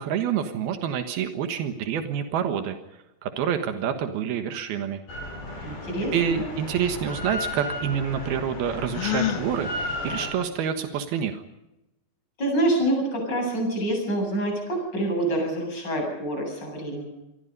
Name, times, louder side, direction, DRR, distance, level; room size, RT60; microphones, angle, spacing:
voice 1, 0.0-2.8 3.2-5.0 6.1-11.4, right 8 dB, 85° right, 7 dB, 3.4 m, -27 dB
Drill, 5.1-10.3, left 1 dB, 80° left, 8.4 m, -34 dB
voice 2, 5.6-6.5 12.4-17.1, right 1 dB, 25° left, 2 dB, 8.4 m, -26 dB
Gasp, 8.9-9.5, left 11 dB, 50° left, 1.9 m, -26 dB
27.5 x 23.0 x 5.4 m, 0.94 s
omnidirectional pair, 4.3 m